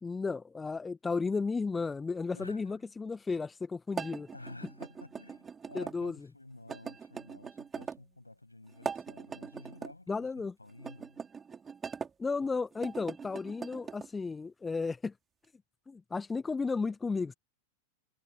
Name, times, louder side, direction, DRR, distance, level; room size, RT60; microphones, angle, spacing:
voice 1, 0.0-4.3 5.7-6.1 10.1-10.5 12.2-15.1 15.9-17.3, left 4 dB, 15° left, 1.1 m, -34 dB
voice 2, 2.3-2.7 4.3-11.3, left 2 dB, 85° left, 7.4 m, -51 dB
sound 1, 3.9-6.0 6.7-8.0 8.7-9.9 10.8-12.1 12.7-14.1, right 6 dB, 20° right, 5.1 m, -41 dB
figure-of-eight pair, 90°, 0 cm